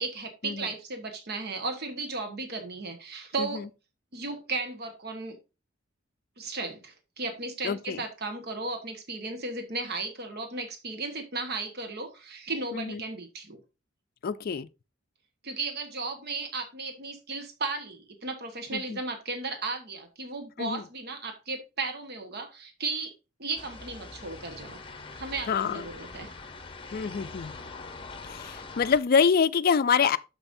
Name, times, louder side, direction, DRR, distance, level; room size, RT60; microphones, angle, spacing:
voice 1, 0.0-3.6 4.1-5.4 6.4-13.6 15.4-23.1 23.4-24.8 25.2-26.3, right 3 dB, 55° right, 1.3 m, -35 dB
voice 2, 7.6-8.0 12.7-13.0 14.2-14.7 18.7-18.8 20.6-20.8 25.5-25.8 26.9-27.5 28.3-30.2, left 6 dB, 50° left, 0.4 m, -25 dB
sound 1, 23.5-29.0, left 4 dB, 25° left, 0.8 m, -43 dB
8.8 x 6.7 x 2.6 m
head